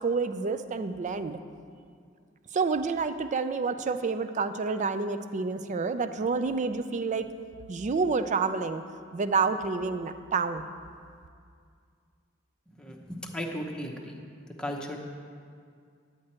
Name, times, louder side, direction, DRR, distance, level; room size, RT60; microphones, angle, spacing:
voice 1, 0.0-1.4 2.5-7.3 7.7-8.8 9.1-10.6, right 4 dB, 35° right, 11 dB, 0.4 m, -28 dB
voice 2, 12.7-14.2 14.6-15.0, equal, 5° left, 0 dB, 0.9 m, -36 dB
10.5 x 8.6 x 4.3 m, 2.2 s
head